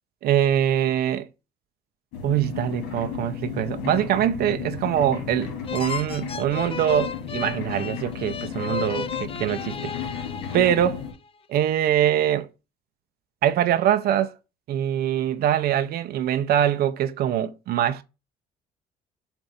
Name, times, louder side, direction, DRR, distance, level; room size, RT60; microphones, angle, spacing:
voice 1, 0.2-1.3 2.2-9.9 10.5-11.0 11.5-12.5 13.4-14.3 14.7-18.0, right 10 dB, 65° right, 0.7 m, -23 dB
sound 1, 2.1-11.1, left 7 dB, 90° left, 2.0 m, -34 dB
sound 2, 5.6-11.2, left 6 dB, 35° left, 0.5 m, -34 dB
7.3 x 2.7 x 5.1 m
cardioid pair, 110°, 17 cm